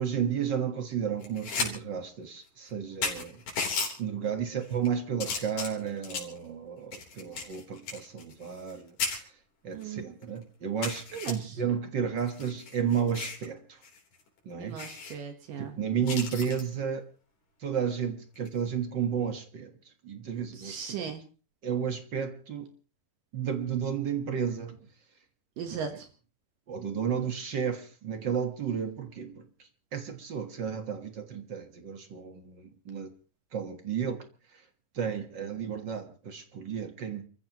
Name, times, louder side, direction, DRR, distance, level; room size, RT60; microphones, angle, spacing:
voice 1, 0.0-3.4 4.0-8.9 9.6-13.8 14.4-14.8 15.6-17.0 17.6-19.7 20.0-21.1 21.6-22.7 23.3-24.8 25.9-26.0 26.7-29.4 29.9-33.1 33.5-34.2 34.9-37.3, right 7 dB, 55° right, 1.3 m, -32 dB
sound 1, 1.2-1.7 2.1-2.2 2.7-2.8 3.0-3.9 4.6-4.9 5.2-6.4 6.9-8.7 9.0-9.2 9.8-9.9 10.2-10.3 10.8-11.3 12.2-13.5 13.8-14.0 14.3-14.4 14.8-15.1 16.1-16.6 18.3-18.6, left 5 dB, 70° left, 5.4 m, -34 dB
voice 2, 9.7-10.1 11.1-11.4 14.6-15.7 20.6-21.2 25.6-25.9, right 7 dB, 70° right, 2.9 m, -37 dB
29.0 x 15.0 x 3.0 m
omnidirectional pair, 4.2 m